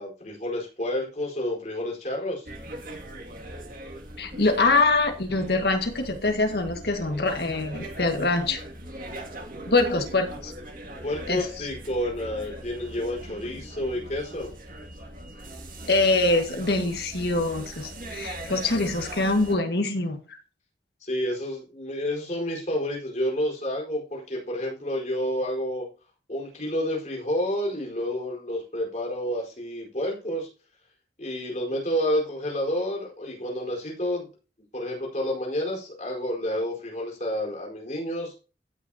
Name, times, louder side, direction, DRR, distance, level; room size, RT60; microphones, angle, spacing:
voice 1, 0.0-2.5 11.0-14.5 21.0-25.9 26.3-30.5 31.2-34.3 34.7-38.3, equal, 40° left, -2 dB, 4.6 m, -29 dB
sound 1, 2.5-19.6, right 1 dB, 50° right, 2.1 m, -40 dB
voice 2, 4.2-8.6 9.7-10.5 11.3-11.7 15.9-20.2, left 3 dB, 70° left, 5 dB, 1.8 m, -24 dB
15.5 x 6.4 x 2.9 m, 0.34 s
head